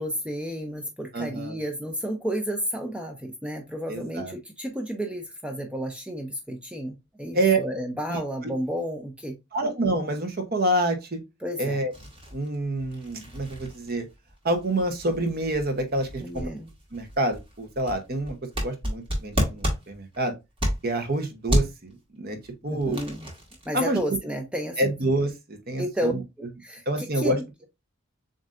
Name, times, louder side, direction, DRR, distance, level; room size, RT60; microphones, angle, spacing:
voice 1, 0.0-9.4 11.4-11.8 16.2-16.7 22.7-23.3 23.7-24.8 25.8-26.1 26.4-27.3, equal, 5° right, 0.5 m, -32 dB
voice 2, 1.1-1.6 3.9-4.3 7.3-7.6 8.1-8.2 9.5-11.2 11.6-11.9 12.3-14.1 14.4-16.5 16.9-20.3 20.8-22.4 22.6-23.0 23.7-24.0 24.8-26.2 26.9-27.4, right 2 dB, 45° right, 0.8 m, -27 dB
sound 1, 11.9-21.1 21.5-21.9 22.4-23.7, equal, 25° right, 1.3 m, -31 dB
7.4 x 2.6 x 2.5 m
head